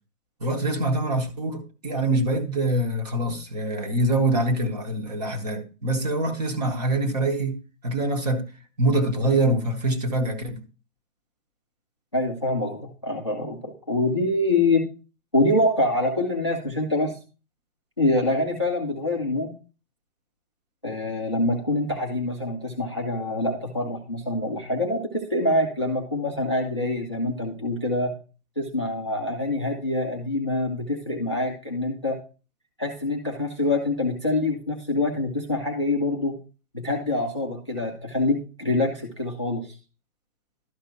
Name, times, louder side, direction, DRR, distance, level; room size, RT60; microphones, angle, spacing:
voice 1, 0.4-8.5 8.8-10.6, right 1 dB, 25° right, 1.0 m, -24 dB
voice 2, 12.1-14.9 15.3-17.2 18.0-19.5 20.8-28.2 28.6-32.2 32.8-36.3 36.7-39.8, left 2 dB, 20° left, 0.5 m, -25 dB
12.0 x 4.9 x 4.2 m
hypercardioid pair, 165°, 45 cm